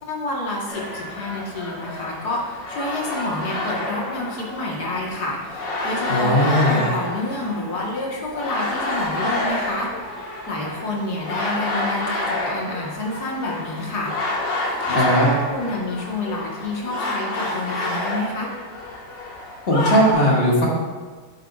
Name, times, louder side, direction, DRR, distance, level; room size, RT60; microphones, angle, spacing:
voice 1, 0.0-9.9 10.5-14.1 14.9-18.5, left 2 dB, 65° left, -2 dB, 2.0 m, -28 dB
sound 1, 0.7-20.1, left 2 dB, 80° left, 2.4 m, -29 dB
voice 2, 6.1-6.9 14.9-15.3 19.7-20.7, equal, 35° left, -5 dB, 2.0 m, -18 dB
9.8 x 7.9 x 2.5 m, 1.4 s
omnidirectional pair, 1.9 m